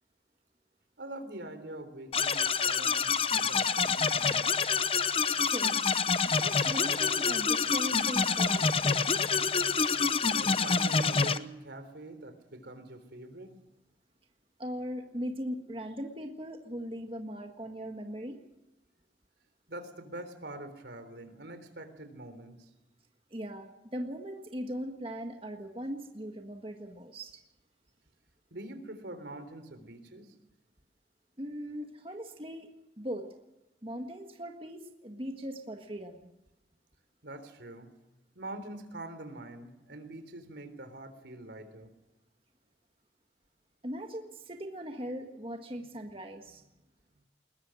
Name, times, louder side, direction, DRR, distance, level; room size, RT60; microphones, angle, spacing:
voice 1, 1.0-4.5 10.3-13.5 19.7-22.7 28.5-30.4 37.2-37.9 38.3-41.9, right 1 dB, 80° right, 9 dB, 3.6 m, -44 dB
sound 1, 2.1-11.4, left 5 dB, 30° left, 0.8 m, -27 dB
voice 2, 5.4-5.8 6.3-9.1 14.6-18.4 23.3-27.4 31.4-32.7 33.0-33.3 33.8-36.3 43.8-46.6, equal, 30° right, 4 dB, 1.7 m, -39 dB
21.0 x 21.0 x 6.4 m, 0.96 s
head